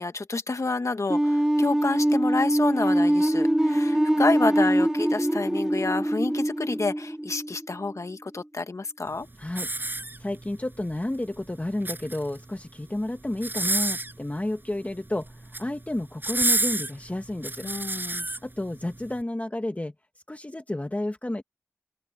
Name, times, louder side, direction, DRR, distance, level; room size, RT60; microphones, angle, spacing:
voice 1, 0.0-9.3 17.6-18.3, left 3 dB, 70° left, 1.5 m, -29 dB
sound 1, 1.1-8.0, right 1 dB, 10° right, 0.7 m, -23 dB
voice 2, 9.4-9.7 10.2-17.7 18.4-19.9 20.3-21.4, left 1 dB, 25° left, 1.7 m, -31 dB
sound 2, 9.5-10.5 11.6-12.4 13.3-14.2 15.3-15.7 16.2-18.4 19.0-19.1, right 2 dB, 40° right, 5.8 m, -28 dB
open air
wide cardioid pair, 60°, 5 cm